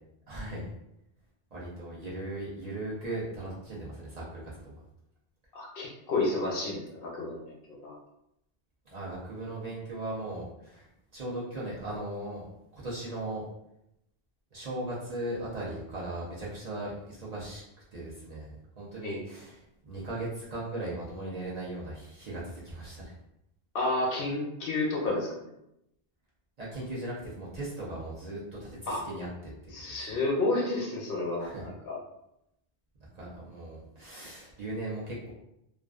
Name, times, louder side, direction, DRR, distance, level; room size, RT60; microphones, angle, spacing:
voice 1, 0.3-0.7 1.5-4.8 8.9-10.9 11.1-12.5 12.7-13.4 14.5-17.6 17.9-23.1 26.6-29.5 29.9-30.0 31.4-31.6 33.1-35.3, right 1 dB, 45° right, -6 dB, 0.6 m, -38 dB
voice 2, 5.5-7.9 19.0-19.2 23.7-25.5 28.9-29.0 29.7-32.0, left 2 dB, 65° left, -2 dB, 0.8 m, -31 dB
2.4 x 2.2 x 2.3 m, 0.83 s
omnidirectional pair, 1.1 m